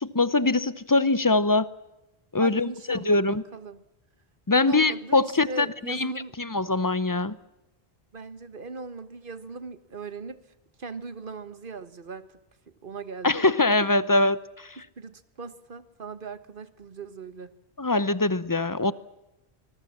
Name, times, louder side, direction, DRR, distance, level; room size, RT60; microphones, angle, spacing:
voice 1, 0.0-1.7 2.3-3.4 4.5-6.1 6.4-7.3 13.2-14.8 17.8-18.9, left 2 dB, 20° left, 16 dB, 0.8 m, -23 dB
voice 2, 2.4-3.2 3.5-3.8 4.5-6.3 8.1-10.4 10.8-12.3 12.8-13.4 15.0-17.5, right 4 dB, 55° right, 12 dB, 1.6 m, -39 dB
25.5 x 21.0 x 7.3 m, 0.93 s
omnidirectional pair, 1.1 m